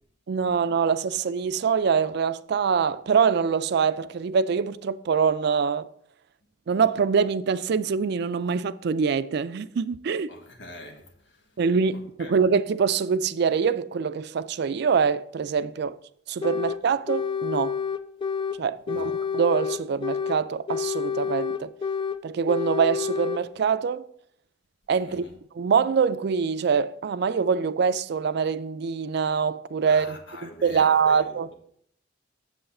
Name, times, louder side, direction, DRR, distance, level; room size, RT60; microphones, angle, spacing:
voice 1, 0.3-5.9 6.7-10.3 11.6-16.0 16.3-17.8 18.6-21.7 22.2-24.0 24.9-25.2 25.5-31.5, right 6 dB, 60° right, 0.4 m, -24 dB
voice 2, 10.3-11.6 11.9-12.4 18.9-19.2 25.0-25.3 29.9-31.5, left 1 dB, 90° left, 1.6 m, -44 dB
sound 1, 16.4-16.8 17.1-18.6 18.9-20.4 20.7-22.2 22.5-23.4, left 6 dB, 25° left, 0.3 m, -28 dB
7.9 x 7.2 x 4.2 m
head